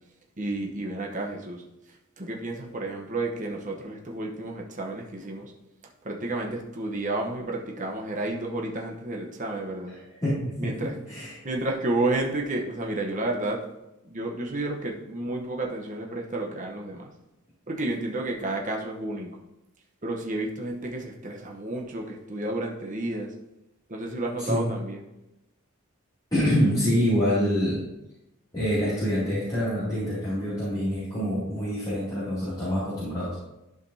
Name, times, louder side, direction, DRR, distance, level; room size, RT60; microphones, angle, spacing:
voice 1, 0.4-1.6 2.2-5.5 6.0-10.0 10.6-10.9 11.4-13.6 14.0-17.1 17.7-19.4 20.0-23.3 23.9-25.0, right 2 dB, 40° right, 0 dB, 1.0 m, -31 dB
voice 2, 10.2-10.5 11.1-11.3 24.4-24.7 26.3-27.8 28.5-33.4, equal, 20° left, -12 dB, 2.6 m, -26 dB
12.0 x 5.1 x 2.8 m, 0.92 s
head